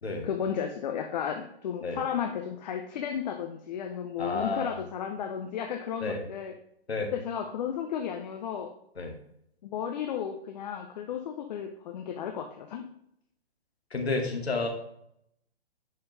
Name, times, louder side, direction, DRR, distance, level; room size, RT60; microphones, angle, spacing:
voice 1, 0.2-6.5 7.1-8.7 9.6-12.8, left 8 dB, 40° left, 4 dB, 0.9 m, -34 dB
voice 2, 4.2-4.7 6.0-6.2 6.9-7.1 9.0-9.2 13.9-14.7, left 3 dB, 75° left, 2 dB, 2.4 m, -30 dB
10.0 x 5.7 x 3.3 m, 0.74 s
figure-of-eight pair, 125°, 32 cm